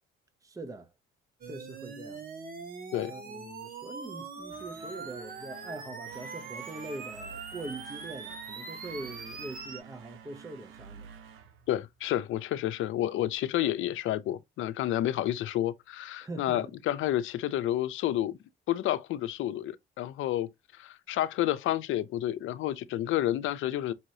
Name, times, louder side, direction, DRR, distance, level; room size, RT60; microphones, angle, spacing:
voice 1, 0.4-0.9 1.4-2.2 3.1-11.1 16.2-16.7, right 2 dB, 15° right, 0.7 m, -43 dB
sound 1, 1.4-9.8, right 4 dB, 45° right, 1.7 m, -42 dB
sound 2, 4.4-12.3, right 7 dB, 85° right, 1.0 m, -51 dB
voice 2, 11.7-18.4 18.7-23.9, left 13 dB, 80° left, 0.6 m, -30 dB
5.5 x 3.0 x 2.7 m
cardioid pair, 90°, 20 cm